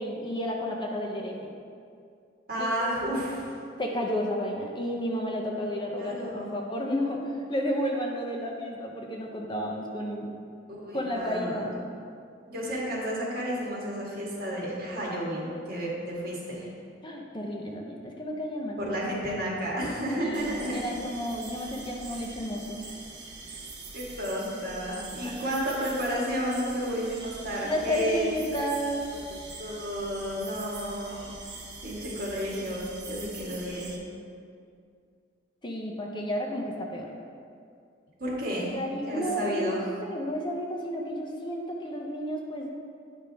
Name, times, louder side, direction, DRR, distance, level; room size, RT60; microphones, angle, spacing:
voice 1, 0.0-1.5 2.6-3.0 3.8-10.3 10.9-11.7 17.0-18.9 20.2-22.8 25.2-25.3 27.6-29.1 35.6-37.1 38.7-42.7, equal, 25° left, 0 dB, 0.6 m, -32 dB
voice 2, 2.5-3.4 6.0-6.6 10.7-11.7 12.5-16.7 18.8-20.8 23.9-28.3 29.6-31.3 31.8-33.9 38.2-38.7 39.1-39.8, equal, 55° right, -5 dB, 1.7 m, -32 dB
sound 1, 20.3-34.0, right 3 dB, 70° right, 1.1 m, -43 dB
9.1 x 5.0 x 3.4 m, 2.3 s
head